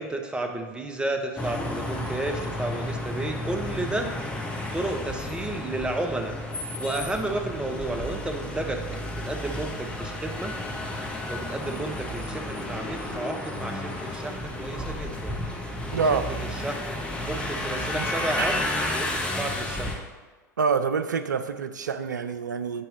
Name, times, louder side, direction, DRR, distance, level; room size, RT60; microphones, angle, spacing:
voice 1, 0.0-4.1 4.7-6.4 6.8-8.8 9.1-10.5 11.3-15.4 16.1-16.2 16.6-16.9 17.3-18.6 18.9-20.0, right 2 dB, 10° right, 5 dB, 0.7 m, -32 dB
sound 1, 1.4-20.0, left 1 dB, 10° left, 1.0 m, -32 dB
voice 2, 15.9-16.3 18.0-18.1 18.4-18.6 20.6-22.8, right 5 dB, 80° right, 10 dB, 0.4 m, -26 dB
8.3 x 3.0 x 4.9 m, 1.4 s
figure-of-eight pair, 80°, 10 cm